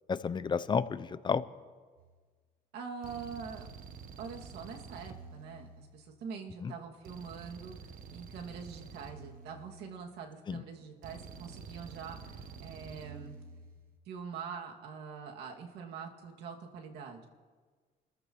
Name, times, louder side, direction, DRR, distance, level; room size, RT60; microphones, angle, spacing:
voice 1, 0.1-1.4 6.6-6.7 10.5-10.6, left 6 dB, 25° left, 15 dB, 0.6 m, -31 dB
sound 1, 2.0-2.3 3.0-6.3 7.1-10.3 11.0-14.0, right 5 dB, 55° right, 1.3 m, -49 dB
voice 2, 2.7-3.7 4.2-7.8 8.1-13.4 14.1-17.3, right 6 dB, 75° right, 1 dB, 2.4 m, -44 dB
29.0 x 14.0 x 3.1 m, 1.5 s
cardioid pair, 110°, 17 cm